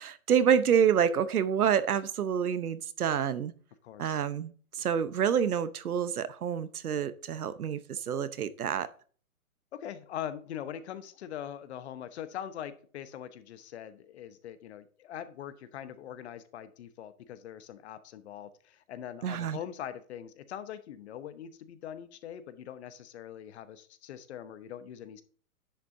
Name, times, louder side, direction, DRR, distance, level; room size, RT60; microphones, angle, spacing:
voice 1, 0.0-3.5 4.0-8.9 19.2-19.6, right 8 dB, 80° right, 14 dB, 1.0 m, -28 dB
voice 2, 3.8-4.2 9.7-25.2, left 10 dB, 45° left, 13 dB, 1.0 m, -42 dB
10.5 x 7.5 x 2.7 m, 0.43 s
hypercardioid pair, 140°, 44 cm